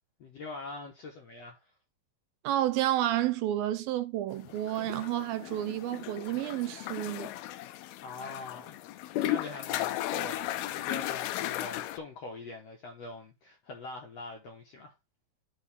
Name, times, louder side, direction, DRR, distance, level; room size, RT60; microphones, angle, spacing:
voice 1, 0.2-1.7 8.0-8.8 9.2-14.9, left 3 dB, 65° left, 1.6 m, -43 dB
voice 2, 2.4-7.4, right 13 dB, 80° right, 2.3 m, -30 dB
sound 1, 4.4-12.0, left 14 dB, 85° left, 2.4 m, -35 dB
11.5 x 3.8 x 3.5 m
omnidirectional pair, 4.4 m